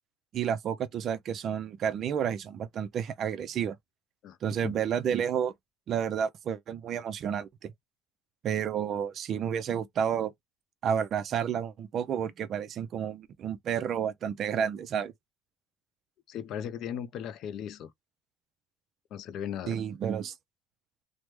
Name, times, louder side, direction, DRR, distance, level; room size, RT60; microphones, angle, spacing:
voice 1, 0.3-3.8 4.4-5.5 5.9-7.7 8.4-10.3 10.8-15.1 19.7-20.3, right 8 dB, 35° right, 0.4 m, -30 dB
voice 2, 16.3-17.9 19.1-19.8, left 9 dB, 45° left, 0.4 m, -37 dB
3.2 x 2.1 x 3.1 m
cardioid pair, 165°, 0 cm